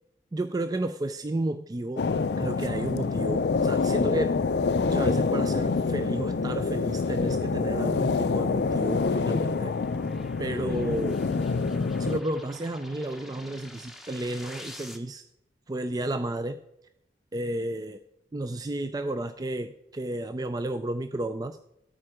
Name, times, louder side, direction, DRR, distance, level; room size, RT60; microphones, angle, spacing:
voice 1, 0.3-2.1 2.4-4.4 4.8-9.7 10.4-11.2 12.0-15.2 15.7-16.6 17.3-18.0 18.3-21.6, right 1 dB, 20° right, 10 dB, 0.4 m, -32 dB
sound 1, 2.0-12.2, left 4 dB, 65° left, 0.4 m, -26 dB
sound 2, 6.0-13.7, left 1 dB, 60° right, 5.0 m, -52 dB
sound 3, 6.2-15.0, left 1 dB, ahead, 1.0 m, -49 dB
13.5 x 8.8 x 4.9 m, 0.84 s
head